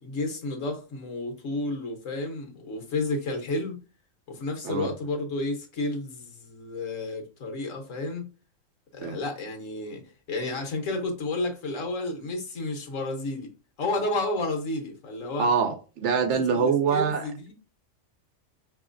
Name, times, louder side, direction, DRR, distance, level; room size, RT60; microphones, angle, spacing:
voice 1, 0.0-3.8 4.3-8.3 8.9-13.5 13.8-15.5 16.1-16.2 16.5-17.5, left 2 dB, 75° left, 1.4 m, -31 dB
voice 2, 15.4-17.2, right 6 dB, 65° right, 0.8 m, -24 dB
5.8 x 3.0 x 2.5 m
omnidirectional pair, 1.4 m